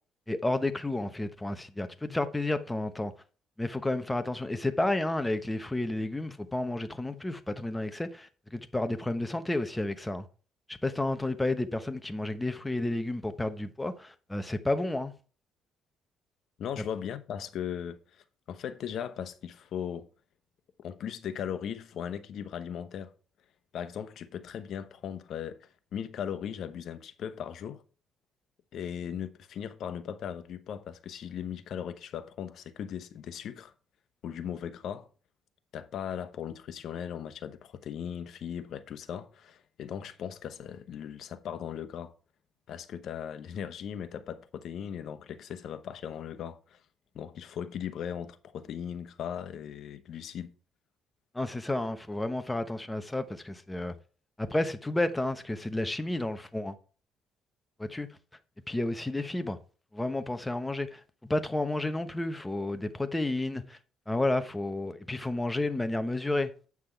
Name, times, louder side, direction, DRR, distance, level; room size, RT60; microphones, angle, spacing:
voice 1, 0.3-3.1 3.6-10.2 10.7-15.1 51.3-53.9 54.4-56.7 57.8-58.1 58.7-59.6 59.9-63.8 64.1-66.5, left 2 dB, 10° left, 1.0 m, -31 dB
voice 2, 16.6-20.1 20.8-23.1 23.7-27.8 28.7-33.7 34.2-35.1 35.7-42.1 42.7-46.8 47.1-50.5, left 8 dB, 60° left, 1.0 m, -38 dB
8.6 x 6.0 x 4.5 m
cardioid pair, 115°, 0 cm